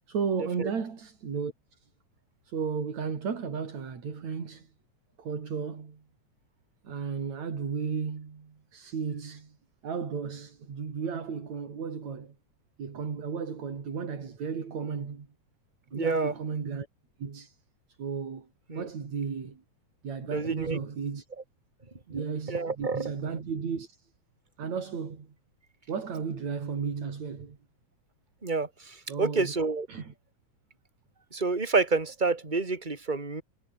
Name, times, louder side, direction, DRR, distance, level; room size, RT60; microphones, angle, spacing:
voice 1, 0.1-1.5 2.4-4.7 5.2-6.0 6.8-9.6 9.8-12.3 12.8-15.3 15.9-16.9 17.2-17.6 18.0-18.5 18.7-19.6 20.0-21.2 22.1-24.1 24.6-25.3 25.9-27.6 29.1-29.6 29.9-30.1, right 6 dB, 70° right, 4.9 m, -34 dB
voice 2, 15.9-16.3 18.7-18.9 20.2-20.8 22.1-22.2 22.5-23.1 28.4-29.9 31.3-33.4, right 3 dB, 15° right, 3.2 m, -28 dB
omnidirectional pair, 3.4 m